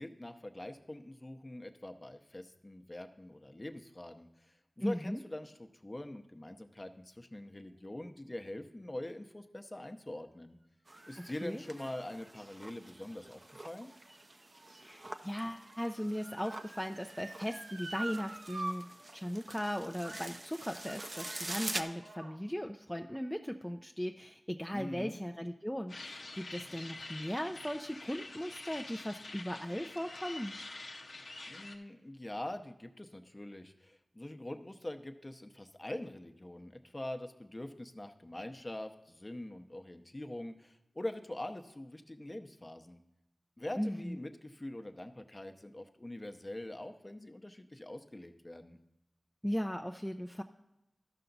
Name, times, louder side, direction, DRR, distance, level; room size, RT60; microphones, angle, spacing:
voice 1, 0.0-10.6 11.1-13.4 13.6-13.9 24.7-25.2 31.5-43.0 43.6-48.8, left 1 dB, 30° left, 7 dB, 0.8 m, -44 dB
voice 2, 4.8-5.2 11.2-11.6 14.8-30.5 43.8-44.2 49.4-50.4, equal, 5° left, 4 dB, 0.5 m, -38 dB
sound 1, 10.9-21.8, right 2 dB, 45° right, 0.6 m, -46 dB
Motor vehicle (road) / Siren, 13.8-18.7 19.1-19.2 20.0-20.4 20.7-22.4 23.1-23.2, right 2 dB, 90° right, 1.1 m, -46 dB
sound 2, 25.9-31.8, left 2 dB, 80° left, 0.8 m, -47 dB
13.0 x 5.7 x 4.0 m, 0.91 s
cardioid pair, 40°, 0 cm